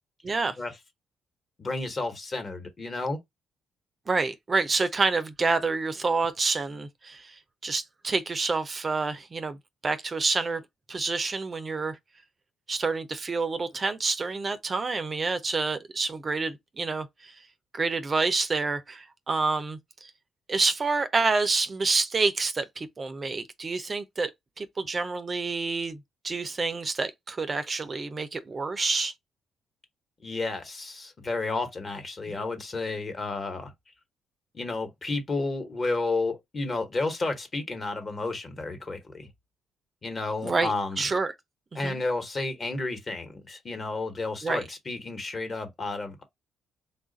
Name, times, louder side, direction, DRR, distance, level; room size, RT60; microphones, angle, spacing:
voice 1, 0.2-0.6 4.1-9.6 9.8-10.6 10.9-12.0 12.7-17.5 17.7-20.1 20.5-24.3 24.6-29.1 32.3-32.4 40.4-41.3 41.7-42.0 44.4-44.6, right 4 dB, 35° right, 0.5 m, -28 dB
voice 2, 1.6-3.2 30.2-33.7 34.5-39.3 40.0-41.0 41.7-46.2, left 3 dB, 35° left, 1.1 m, -31 dB
3.2 x 2.4 x 3.8 m
cardioid pair, 90°, 0 cm